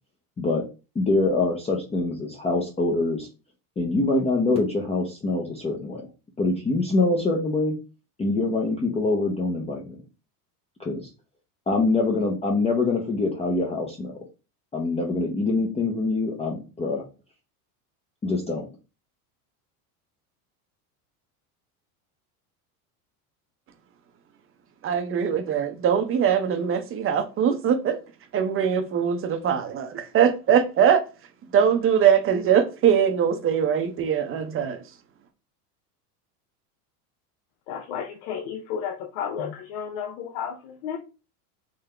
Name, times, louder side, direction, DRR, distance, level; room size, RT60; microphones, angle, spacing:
voice 1, 0.9-3.3 3.8-6.0 6.4-7.8 8.2-9.9 10.8-11.1 11.7-14.2 14.7-17.0 18.2-18.7, left 3 dB, 15° left, 0.6 m, -24 dB
voice 2, 24.8-28.0 28.3-31.0 31.5-34.8, right 8 dB, 30° right, 0.7 m, -22 dB
voice 3, 37.7-41.0, left 8 dB, 65° left, 0.7 m, -32 dB
3.8 x 2.7 x 3.3 m
supercardioid pair, 115°, 45 cm